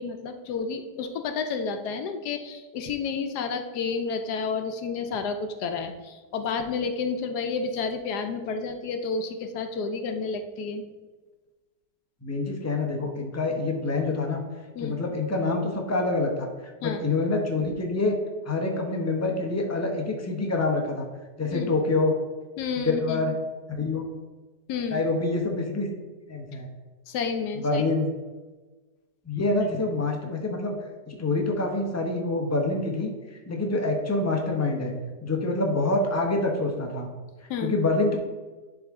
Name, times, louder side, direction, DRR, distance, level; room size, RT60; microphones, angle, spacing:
voice 1, 0.0-10.9 14.7-15.0 16.8-17.0 21.5-21.7 22.6-23.2 24.7-25.0 27.1-27.8 37.5-37.7, left 5 dB, 70° left, 7 dB, 1.2 m, -30 dB
voice 2, 12.2-14.4 14.8-16.5 16.8-18.2 18.4-21.1 21.4-22.1 23.0-23.3 23.7-24.1 24.9-25.9 26.3-26.7 27.6-28.1 29.3-30.8 31.1-33.1 33.5-37.1 37.6-38.2, left 2 dB, 25° left, 1 dB, 0.3 m, -26 dB
11.0 x 3.7 x 3.6 m, 1.3 s
omnidirectional pair, 1.9 m